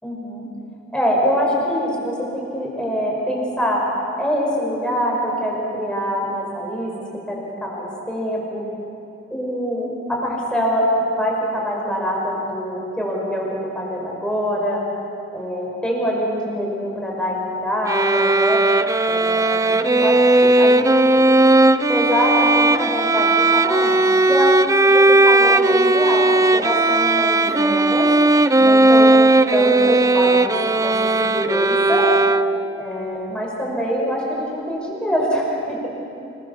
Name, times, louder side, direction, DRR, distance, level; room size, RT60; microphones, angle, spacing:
voice 1, 0.0-0.5 0.9-3.8 4.2-6.9 7.3-8.7 9.3-10.9 11.2-13.5 13.7-14.8 15.3-18.7 19.1-21.2 21.9-24.0 24.3-28.1 28.6-29.2 29.5-32.1 32.8-35.9, equal, 5° left, -2 dB, 5.4 m, -24 dB
sound 1, 17.9-32.8, right 2 dB, 15° right, 0.5 m, -16 dB
27.5 x 22.0 x 7.2 m, 2.8 s
head